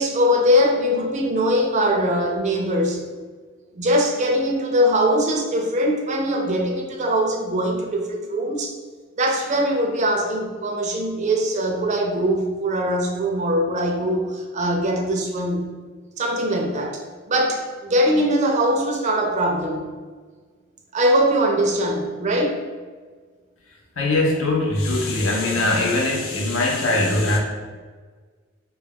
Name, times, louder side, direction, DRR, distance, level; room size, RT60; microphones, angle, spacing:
voice 1, 0.0-3.0 3.7-8.7 9.2-15.7 16.2-17.0 17.3-19.9 20.9-22.6 25.4-25.5, equal, 35° right, 1 dB, 0.4 m, -21 dB
voice 2, 24.0-27.4, left 2 dB, 75° left, 0 dB, 0.6 m, -21 dB
2.3 x 2.2 x 3.4 m, 1.5 s
head